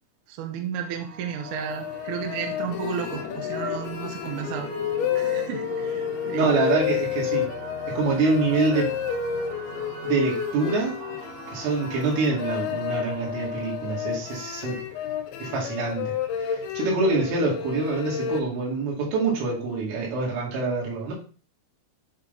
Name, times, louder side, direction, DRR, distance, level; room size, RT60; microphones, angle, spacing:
voice 1, 0.3-4.7 5.1-6.6, right 8 dB, 70° right, 4 dB, 2.6 m, -33 dB
sound 1, 0.8-16.2, right 4 dB, 45° right, 2.3 m, -42 dB
sound 2, 1.5-18.4, left 9 dB, 85° left, 2.2 m, -31 dB
sound 3, 2.7-10.3, left 8 dB, 65° left, 2.7 m, -42 dB
voice 2, 6.3-7.5 8.0-8.9 10.0-11.0 11.5-14.8 15.4-16.1 16.4-21.1, right 3 dB, 90° right, -4 dB, 5.1 m, -25 dB
9.6 x 3.9 x 4.0 m, 0.38 s
omnidirectional pair, 5.6 m